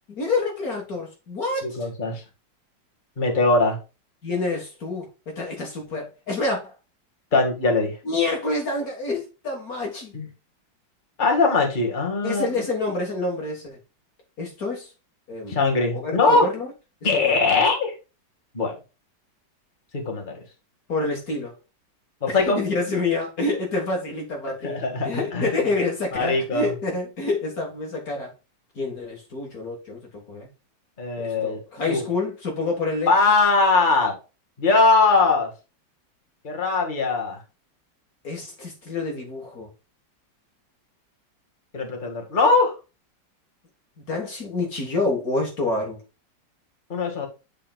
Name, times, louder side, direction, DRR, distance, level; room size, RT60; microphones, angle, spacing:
voice 1, 0.2-1.8 4.2-5.1 5.3-6.7 8.1-10.1 12.2-13.8 14.4-14.9 15.3-15.5 16.0-16.7 17.1-17.5 20.9-21.5 22.3-28.3 28.8-30.0 30.3-30.5 31.2-33.1 38.2-39.7 44.1-46.0, left 3 dB, 55° left, 1 dB, 1.9 m, -27 dB
voice 2, 1.6-2.2 3.2-3.8 7.3-7.9 10.1-10.3 11.2-12.5 15.5-16.5 17.0-17.9 18.5-18.7 19.9-20.3 22.2-22.6 24.6-25.6 26.1-26.7 31.0-31.6 31.9-32.0 33.1-34.1 34.6-35.5 36.4-37.4 41.7-42.7 46.9-47.3, left 3 dB, 25° left, 1 dB, 1.9 m, -21 dB
8.4 x 5.4 x 2.3 m, 0.29 s
omnidirectional pair, 2.0 m